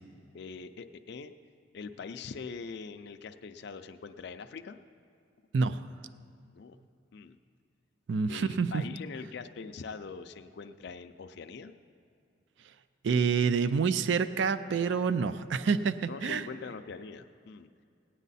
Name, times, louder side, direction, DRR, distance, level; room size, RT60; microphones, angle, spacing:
voice 1, 0.3-1.3 1.7-4.8 6.4-6.8 7.1-7.4 8.3-11.7 16.1-17.7, left 5 dB, 60° left, 7 dB, 0.4 m, -43 dB
voice 2, 5.5-5.9 8.1-8.8 13.0-16.5, right 5 dB, 65° right, 13 dB, 0.4 m, -27 dB
18.0 x 9.1 x 4.1 m, 2.4 s
head